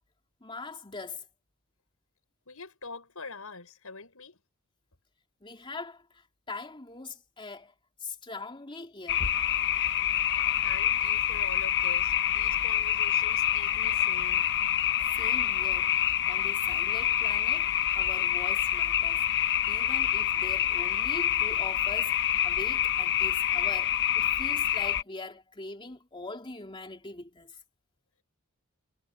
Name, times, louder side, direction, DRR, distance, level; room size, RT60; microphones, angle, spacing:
voice 1, 0.4-1.3 5.4-7.7 8.0-9.3 15.1-16.0 16.3-19.2 19.7-22.2 22.4-27.6, left 3 dB, 25° left, 3.1 m, -42 dB
voice 2, 2.5-4.4 10.6-14.5, left 4 dB, 85° left, 5.7 m, -44 dB
sound 1, 9.1-25.0, left 11 dB, 55° left, 1.0 m, -27 dB
head